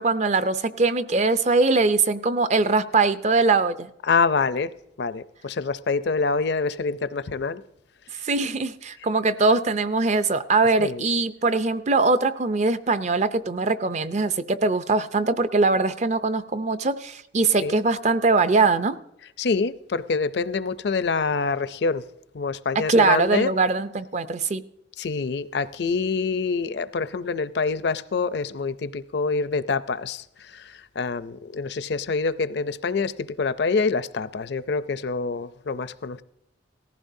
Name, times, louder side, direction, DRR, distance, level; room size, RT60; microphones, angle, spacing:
voice 1, 0.0-3.9 8.2-19.0 22.8-24.7, right 3 dB, 35° right, 0.5 m, -22 dB
voice 2, 4.0-4.7 5.0-7.6 10.8-11.0 17.6-17.8 19.2-22.0 22.3-23.5 25.0-36.2, left 4 dB, 60° left, 0.5 m, -26 dB
18.0 x 15.0 x 2.7 m
head